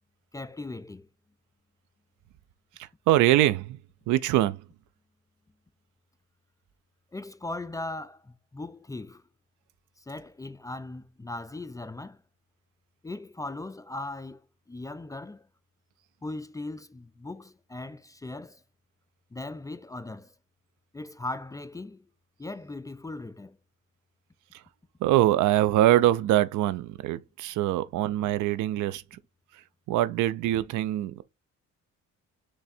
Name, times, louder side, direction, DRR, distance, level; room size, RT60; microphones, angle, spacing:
voice 1, 0.3-1.1 7.1-9.2 10.0-12.2 13.0-14.4 14.7-15.5 16.2-18.6 19.3-20.3 20.9-22.1 22.4-23.6, left 2 dB, 10° left, 0.3 m, -38 dB
voice 2, 2.8-3.8 4.1-4.6 24.5-24.6 25.0-29.2 29.5-29.6 29.9-31.2, right 13 dB, 80° right, 0.4 m, -24 dB
3.4 x 3.3 x 4.1 m
cardioid pair, 90°, 30 cm